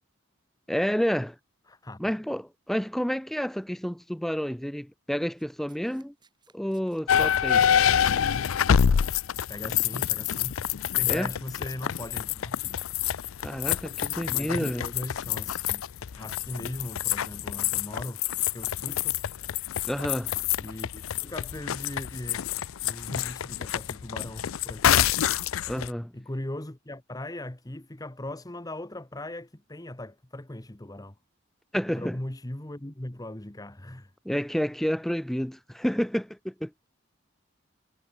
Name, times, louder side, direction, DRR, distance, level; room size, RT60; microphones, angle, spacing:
voice 1, 0.7-1.4 2.0-6.1 6.5-7.6 11.1-11.3 13.4-14.9 19.8-20.3 25.7-26.1 31.7-32.2 34.3-36.7, equal, ahead, 0.3 m, -29 dB
voice 2, 1.7-2.1 9.5-10.6 11.0-12.6 14.2-15.9 16.2-18.2 18.5-19.2 20.6-22.5 22.8-25.1 26.1-31.2 31.9-34.1, left 1 dB, 20° left, 1.0 m, -39 dB
Domestic sounds home sounds, 5.4-9.3 10.2-10.4, right 6 dB, 20° right, 5.5 m, -64 dB
sound 1, 7.1-25.9, left 9 dB, 80° left, 0.5 m, -27 dB
head